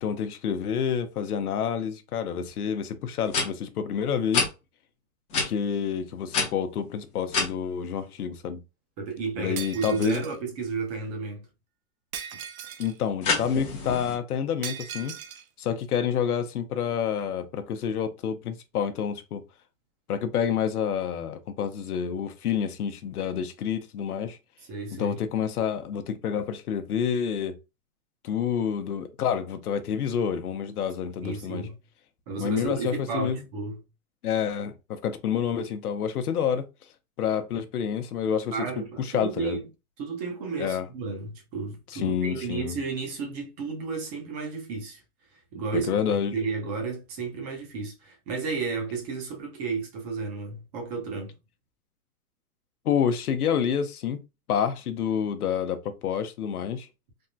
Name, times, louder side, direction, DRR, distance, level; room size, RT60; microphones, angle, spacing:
voice 1, 0.0-4.5 5.5-8.6 9.4-10.2 12.8-15.1 15.6-19.4 20.1-24.4 25.0-27.6 28.2-31.7 32.4-33.4 34.2-36.6 37.2-38.5 39.0-39.6 40.6-40.9 41.9-42.8 45.9-46.3 52.9-54.2 54.5-56.9, left 8 dB, 90° left, 0.7 m, -28 dB
sound 1, 2.5-2.6 3.2-3.5 4.3-4.5 5.3-5.5 6.3-7.5 13.2-14.2, left 4 dB, 15° left, 0.7 m, -27 dB
voice 2, 9.0-11.5 12.3-12.4 24.7-25.2 31.2-31.8 32.3-33.8 38.5-39.7 40.0-45.0 45.3-51.4, right 4 dB, 30° right, 0.8 m, -33 dB
Shatter, 9.6-10.4 12.1-13.0 14.6-15.4, right 8 dB, 70° right, 0.7 m, -38 dB
3.5 x 2.1 x 2.6 m
hypercardioid pair, 150°, 43 cm